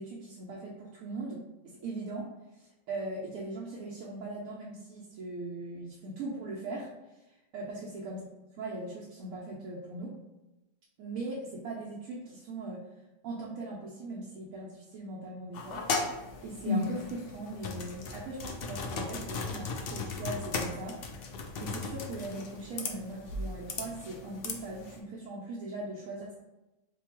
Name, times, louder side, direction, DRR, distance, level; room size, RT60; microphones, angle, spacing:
voice 1, 0.0-2.3 2.6-6.9 7.3-8.2 8.6-10.1 11.0-12.9 13.2-15.9 16.4-21.0 21.6-26.3, right 2 dB, 85° right, -5 dB, 1.1 m, -40 dB
sound 1, 15.5-25.0, left 3 dB, 65° left, 0.6 m, -36 dB
2.8 x 2.3 x 4.2 m, 1.0 s
omnidirectional pair, 1.4 m